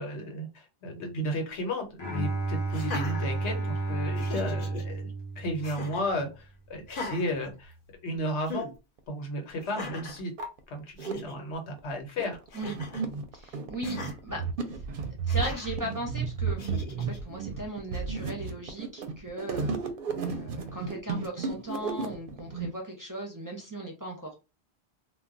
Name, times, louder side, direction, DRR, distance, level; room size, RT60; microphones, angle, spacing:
voice 1, 0.0-7.7 8.0-8.7 9.1-10.3 10.7-12.4, equal, 90° left, 3 dB, 1.1 m, -34 dB
Bowed string instrument, 2.0-6.1, right 2 dB, 30° left, 0.7 m, -32 dB
Laughter, 2.7-3.8 4.2-4.8 5.6-6.1 6.8-8.1 8.5-8.7 9.6-10.2 10.7-10.8 11.0-11.4 12.5-13.1 13.8-14.1 15.3-15.8 16.6-17.2, left 3 dB, 55° left, 0.8 m, -39 dB
sound 1, 9.0-9.1 9.8-9.9 10.2-11.1 11.8-22.7, right 5 dB, 60° right, 0.6 m, -33 dB
voice 2, 13.3-14.8 15.3-16.6 17.0-19.7 20.2-24.3, right 1 dB, 25° right, 0 dB, 0.5 m, -38 dB
2.2 x 2.2 x 3.7 m, 0.29 s
omnidirectional pair, 1.1 m